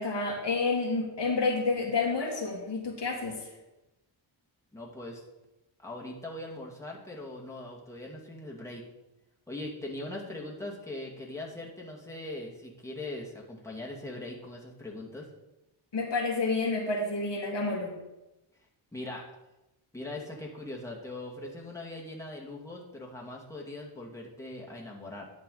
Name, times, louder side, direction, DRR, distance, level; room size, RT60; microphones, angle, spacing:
voice 1, 0.0-3.4 15.9-17.9, left 3 dB, 55° left, 0 dB, 2.0 m, -29 dB
voice 2, 4.7-5.2 5.8-8.8 9.5-15.3 18.9-19.3 19.9-25.3, left 2 dB, 5° left, -3 dB, 2.1 m, -41 dB
10.5 x 7.4 x 3.9 m, 0.96 s
cardioid pair, 70°, 50 cm